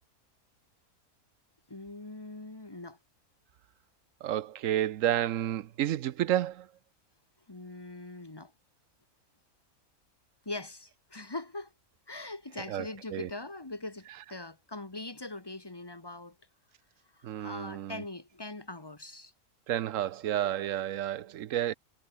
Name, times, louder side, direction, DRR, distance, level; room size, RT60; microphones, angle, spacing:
voice 1, 1.7-3.0 7.5-8.5 10.4-11.7 12.1-16.3 17.1-19.3, left 2 dB, 15° left, 1.6 m, -42 dB
voice 2, 4.2-6.7 12.7-13.3 17.2-18.0 19.7-21.7, right 12 dB, 65° right, 1.0 m, -31 dB
omnidirectional pair, 1.5 m